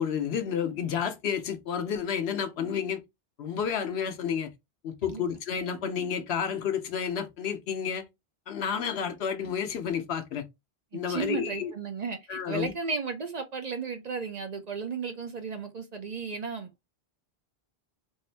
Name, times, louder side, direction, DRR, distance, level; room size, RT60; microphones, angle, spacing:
voice 1, 0.0-3.0 3.4-4.5 4.8-8.0 8.5-10.5 10.9-11.7 12.3-12.7, left 7 dB, 85° left, 1.0 m, -30 dB
voice 2, 10.9-16.9, right 5 dB, 50° right, 0.6 m, -34 dB
3.6 x 2.6 x 3.2 m
omnidirectional pair, 1.1 m